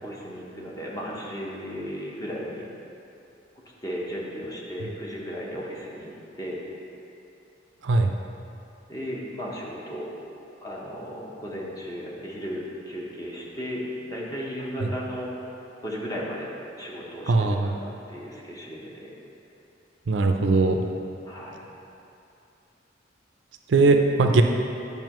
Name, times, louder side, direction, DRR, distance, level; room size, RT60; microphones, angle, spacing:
voice 1, 0.0-2.7 3.8-6.6 8.9-10.1 10.6-15.5 15.8-19.1 21.3-21.7, equal, 20° left, -4 dB, 1.0 m, -35 dB
voice 2, 17.3-17.7 20.1-20.8 23.7-24.4, right 3 dB, 75° right, 4 dB, 0.5 m, -20 dB
9.2 x 5.4 x 3.0 m, 2.7 s
head